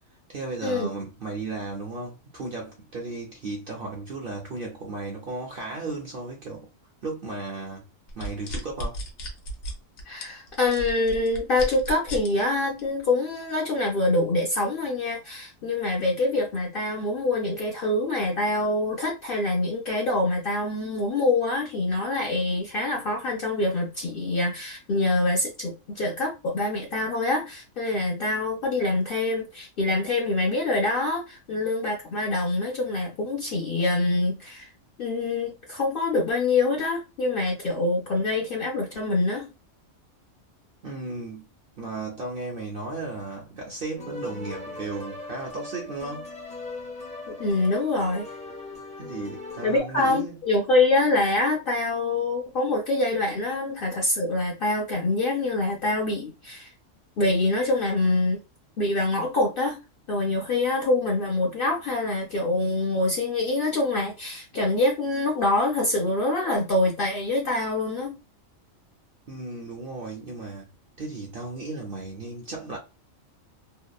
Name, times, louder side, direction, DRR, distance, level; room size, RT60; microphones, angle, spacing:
voice 1, 0.3-6.7 7.0-7.8 8.2-9.0 40.8-41.5 41.8-46.3 49.0-50.4 69.3-70.7 71.0-72.8, right 3 dB, 55° right, 0.6 m, -35 dB
sound 1, 8.1-12.3 12.8-13.0, equal, 85° left, 1.2 m, -34 dB
voice 2, 10.0-34.7 35.0-39.5 47.3-48.3 49.6-56.7 57.2-58.4 58.8-59.8 60.1-68.2, left 2 dB, 60° left, 0.6 m, -25 dB
sound 2, 43.9-49.8, left 3 dB, 10° left, 0.4 m, -39 dB
2.8 x 2.0 x 2.3 m
omnidirectional pair, 1.4 m